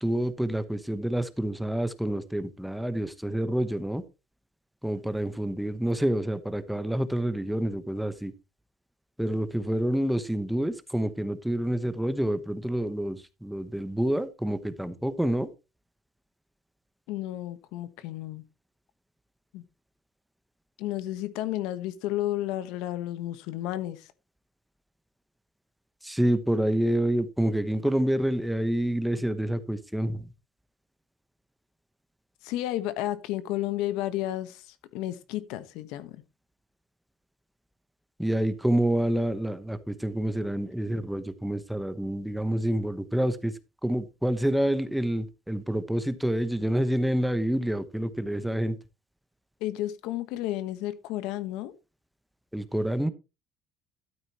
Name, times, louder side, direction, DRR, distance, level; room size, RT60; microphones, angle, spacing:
voice 1, 0.0-4.0 4.8-8.3 9.2-15.5 26.0-30.3 38.2-43.5 43.8-48.8 52.5-53.1, right 1 dB, ahead, 1.0 m, -28 dB
voice 2, 17.1-18.4 19.5-19.6 20.8-24.1 32.4-36.2 49.6-51.7, left 14 dB, 75° left, 1.2 m, -32 dB
12.5 x 9.0 x 3.0 m
cardioid pair, 125°, 0 cm